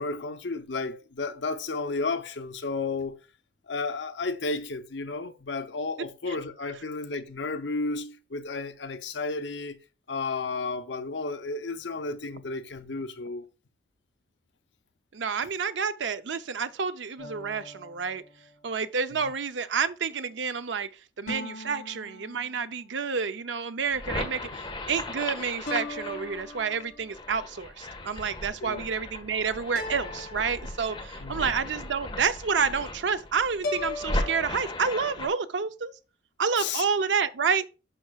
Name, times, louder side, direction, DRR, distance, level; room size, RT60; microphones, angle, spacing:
voice 1, 0.0-3.2 3.7-9.8 10.1-13.5 19.1-19.3 28.6-28.9 31.2-31.5 36.6-36.8, left 3 dB, 80° left, 0.8 m, -32 dB
voice 2, 15.1-18.2 18.6-20.9 21.2-35.9 36.4-37.7, right 6 dB, 85° right, 0.6 m, -29 dB
sound 1, 17.2-18.9 21.3-23.0 25.7-27.2 29.8-31.4 33.6-34.5, left 2 dB, 55° left, 2.7 m, -39 dB
sound 2, 23.8-35.3, left 2 dB, 30° left, 1.5 m, -37 dB
11.5 x 5.6 x 2.4 m
head